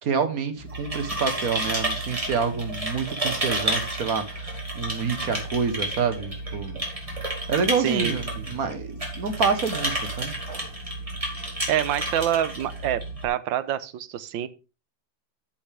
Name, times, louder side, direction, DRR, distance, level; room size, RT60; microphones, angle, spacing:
voice 1, 0.0-6.8 7.5-10.3, right 5 dB, 50° right, 1.6 m, -27 dB
sound 1, 0.6-13.3, right 1 dB, 15° right, 2.6 m, -31 dB
voice 2, 7.8-8.5 11.7-14.5, right 10 dB, 85° right, 1.5 m, -27 dB
13.0 x 5.7 x 3.4 m
omnidirectional pair, 2.0 m